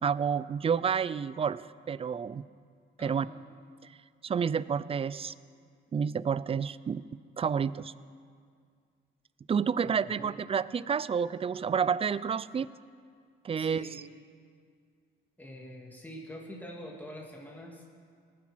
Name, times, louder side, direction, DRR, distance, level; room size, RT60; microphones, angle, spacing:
voice 1, 0.0-2.5 3.0-3.3 4.2-5.3 5.9-7.0 7.4-7.9 9.5-12.7 13.4-14.0, right 7 dB, 30° right, 18 dB, 0.4 m, -29 dB
voice 2, 3.0-3.4 9.8-10.4 13.6-14.0 15.4-17.9, equal, 10° left, -2 dB, 2.4 m, -45 dB
19.0 x 10.0 x 6.3 m, 2.1 s
cardioid pair, 90°, 20 cm